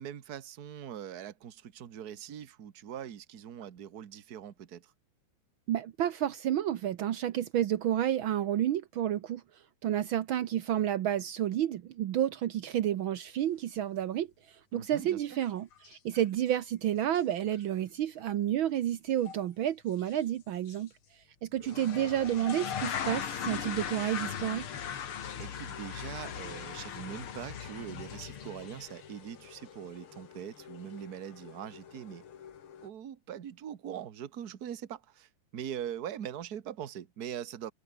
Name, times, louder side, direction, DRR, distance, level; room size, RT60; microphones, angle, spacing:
voice 1, 0.0-4.9 14.7-15.2 21.7-22.7 25.4-32.2 32.8-37.7, right 9 dB, 55° right, 1.0 m, -42 dB
voice 2, 5.7-9.4 9.8-14.3 14.7-20.9 21.4-24.7, right 11 dB, 90° right, 1.1 m, -30 dB
sound 1, 15.3-15.4 15.7-16.2 16.5-16.6 17.2-17.3 17.5-17.6 19.3-19.4 20.0-20.2 20.7-20.8 21.6-32.9, left 8 dB, 50° left, 2.3 m, -40 dB
open air
omnidirectional pair, 3.6 m